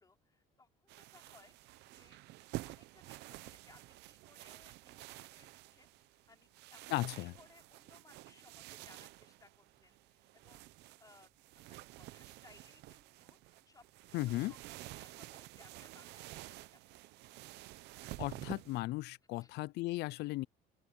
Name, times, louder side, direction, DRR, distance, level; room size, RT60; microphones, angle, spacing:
voice 1, 0.0-2.2 2.7-6.8 7.2-10.7 11.0-11.3 11.7-16.9 19.4-19.6, left 3 dB, 20° left, 4.5 m, -65 dB
sound 1, 0.9-18.8, right 18 dB, 85° right, 0.8 m, -50 dB
voice 2, 6.9-7.3 14.1-14.5 18.2-20.5, left 19 dB, 80° left, 0.4 m, -36 dB
open air
cardioid pair, 110°, 17 cm